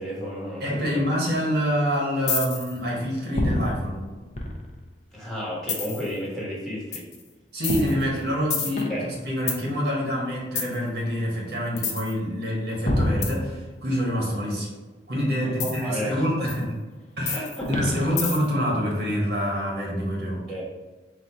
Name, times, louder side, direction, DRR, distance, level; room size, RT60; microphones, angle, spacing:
voice 1, 0.0-1.0 5.1-7.1 8.9-9.1 15.6-16.5 17.3-18.0 20.5-20.7, equal, ahead, -6 dB, 1.2 m, -33 dB
voice 2, 0.6-4.0 7.5-14.7 15.1-16.7 17.2-20.4, equal, 65° right, -2 dB, 1.3 m, -26 dB
sound 1, 2.3-2.8 3.4-4.9 5.7-6.1 6.9-7.2 7.6-9.6 10.6-10.8 11.8-12.1 12.9-14.0 15.6-15.8 16.5-16.6 17.3-18.6, left 2 dB, 40° left, 0.7 m, -27 dB
4.2 x 2.5 x 4.3 m, 1.3 s
head